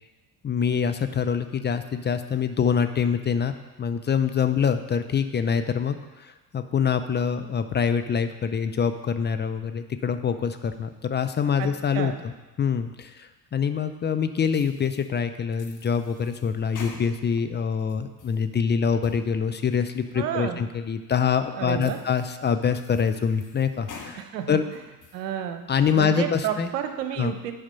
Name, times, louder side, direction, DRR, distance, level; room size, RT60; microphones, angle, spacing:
voice 1, 0.4-3.5 3.8-12.3 12.6-24.6 25.7-26.7 27.2-27.3, left 7 dB, 25° left, 9 dB, 0.5 m, -25 dB
voice 2, 11.6-12.2 20.1-20.6 21.6-22.0 24.2-24.6 25.1-25.6 25.9-27.5, right 10 dB, 85° right, 8 dB, 0.8 m, -30 dB
sound 1, 14.5-15.1 15.5-17.4 17.8-18.4 18.9-19.3 19.7-19.8 20.4-20.5 21.1-21.2 21.7-22.4 22.7-24.2 24.6-25.2 25.7-26.1, left 4 dB, 40° left, 1.3 m, -46 dB
8.8 x 5.0 x 5.6 m, 1.2 s
hypercardioid pair, 60°, 47 cm